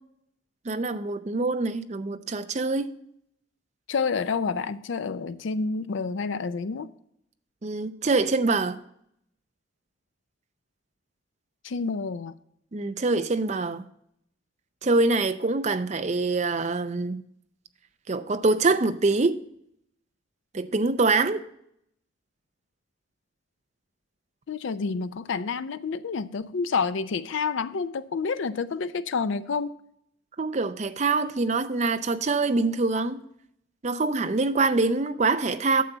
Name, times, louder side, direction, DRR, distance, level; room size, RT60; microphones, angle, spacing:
voice 1, 0.7-2.9 7.6-8.8 12.7-13.8 14.8-17.2 18.1-19.4 20.5-21.4 30.4-33.2 33.8-35.8, right 3 dB, 35° right, 0.5 m, -24 dB
voice 2, 3.9-6.9 11.6-12.3 24.5-29.8, left 5 dB, 70° left, 0.4 m, -29 dB
9.3 x 6.8 x 3.9 m
head